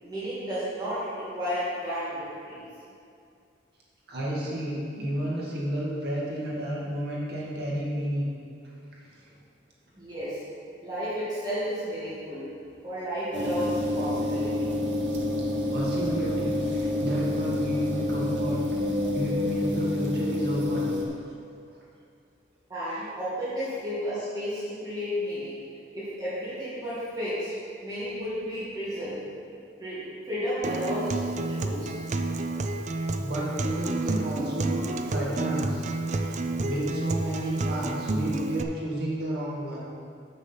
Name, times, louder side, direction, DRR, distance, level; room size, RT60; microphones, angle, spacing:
voice 1, 0.0-2.7 10.0-10.4 10.8-12.4 12.8-14.7 22.7-25.6 25.9-27.5 27.8-29.2 29.8-31.9, equal, 20° right, -11 dB, 2.0 m, -32 dB
voice 2, 4.1-8.3 9.2-9.3 15.7-18.6 19.1-20.9 33.2-35.9 36.1-39.8, right 1 dB, 60° right, -5 dB, 1.8 m, -31 dB
sound 1, 13.3-21.1, left 1 dB, 80° right, 1.3 m, -28 dB
Acoustic guitar, 30.6-38.6, right 2 dB, 40° right, 0.4 m, -30 dB
7.5 x 6.3 x 5.7 m, 2.4 s
head